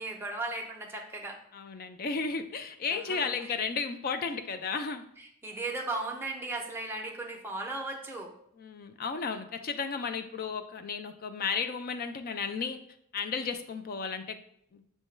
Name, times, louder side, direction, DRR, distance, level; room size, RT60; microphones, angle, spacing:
voice 1, 0.0-1.4 2.9-3.6 5.2-8.3, right 2 dB, 10° right, 0 dB, 0.5 m, -37 dB
voice 2, 1.5-5.0 8.6-12.8 13.1-14.4 14.7-14.8, left 5 dB, 45° left, 9 dB, 0.3 m, -33 dB
6.2 x 2.2 x 3.2 m, 0.69 s
head